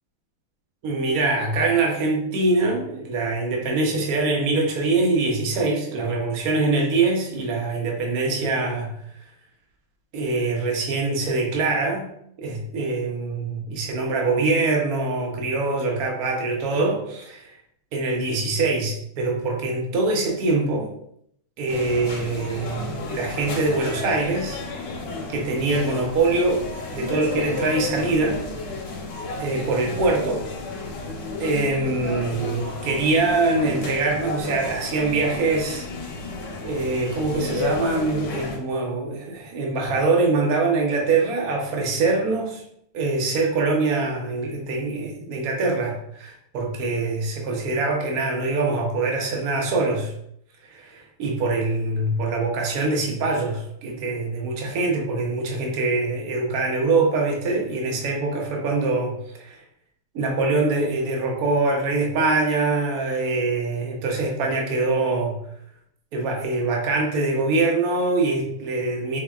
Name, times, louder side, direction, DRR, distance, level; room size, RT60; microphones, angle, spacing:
voice 1, 0.8-8.9 10.1-12.1 12.4-17.5 17.9-20.9 21.6-24.6 25.3-26.6 26.9-28.4 29.4-30.4 31.4-35.8 36.6-42.6 42.9-50.1 50.7-59.6 60.1-65.4 66.1-69.2, right 3 dB, 70° right, 0 dB, 0.8 m, -24 dB
sound 1, 21.7-38.6, left 3 dB, 65° left, 1.3 m, -32 dB
4.7 x 2.8 x 2.3 m, 0.72 s
omnidirectional pair, 2.3 m